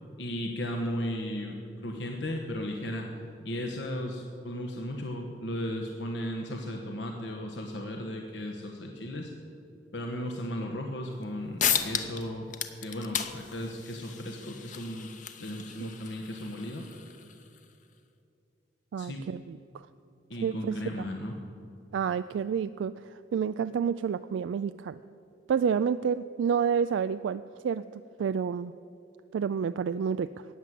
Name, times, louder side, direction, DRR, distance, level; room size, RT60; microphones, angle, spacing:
voice 1, 0.2-1.6 1.8-3.1 3.4-9.3 9.9-12.5 12.8-15.1 15.4-16.8 19.0-19.2 20.3-21.3, equal, 80° left, 2 dB, 1.2 m, -35 dB
sound 1, 11.2-11.3 11.6-12.2 12.5-17.6, left 8 dB, 45° left, 0.8 m, -34 dB
voice 2, 18.9-19.9 20.4-20.8 21.9-25.0 25.5-28.7 29.3-30.4, right 7 dB, 90° right, 12 dB, 0.3 m, -29 dB
14.5 x 9.4 x 7.6 m, 2.7 s
head